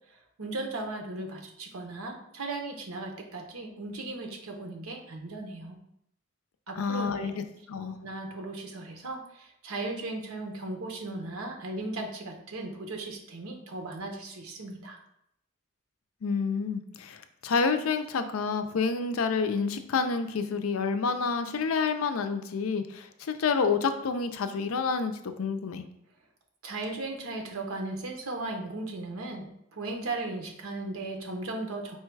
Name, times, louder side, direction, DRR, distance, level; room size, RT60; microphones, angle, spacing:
voice 1, 0.1-5.8 6.7-7.3 8.0-15.0 26.6-32.0, right 2 dB, 85° right, 3 dB, 0.8 m, -37 dB
voice 2, 6.8-8.0 16.2-25.8, left 5 dB, 85° left, 8 dB, 0.4 m, -29 dB
4.6 x 2.2 x 4.6 m, 0.76 s
head